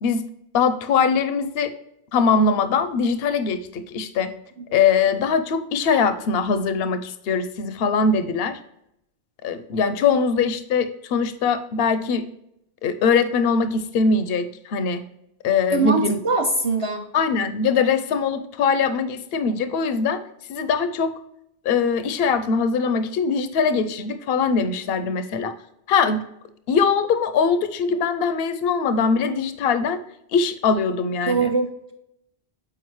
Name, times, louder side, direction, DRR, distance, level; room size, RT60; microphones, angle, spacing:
voice 1, 0.5-1.7 2.1-4.3 4.7-8.6 9.4-12.2 12.8-15.0 15.4-16.2 17.1-20.2 20.5-21.1 21.6-25.5 25.9-26.2 26.7-30.0 30.3-31.5, left 5 dB, 70° left, 11 dB, 0.8 m, -22 dB
voice 2, 15.7-17.0 31.2-31.9, right 3 dB, 35° right, 1 dB, 0.8 m, -22 dB
7.9 x 4.8 x 3.1 m, 0.78 s
omnidirectional pair, 1.1 m